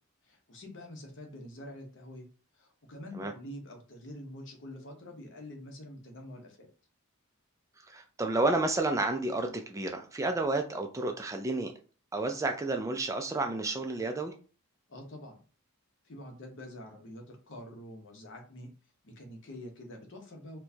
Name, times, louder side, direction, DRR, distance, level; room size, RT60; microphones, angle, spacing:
voice 1, 0.2-2.3 2.5-6.7 14.9-15.4 16.0-18.7 19.0-20.6, left 1 dB, 55° left, 3 dB, 0.9 m, -46 dB
voice 2, 7.9-11.7 12.1-14.3, right 2 dB, 15° right, 5 dB, 0.3 m, -31 dB
4.4 x 2.2 x 2.7 m, 0.37 s
head